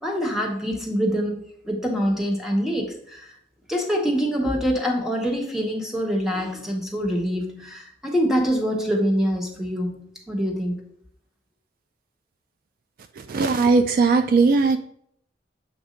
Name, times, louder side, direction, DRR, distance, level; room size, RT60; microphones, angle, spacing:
voice 1, 0.0-3.3 3.7-10.8, equal, ahead, 0 dB, 1.1 m, -25 dB
voice 2, 13.3-14.8, right 4 dB, 50° right, 7 dB, 0.3 m, -18 dB
7.3 x 2.6 x 5.0 m, 0.68 s
head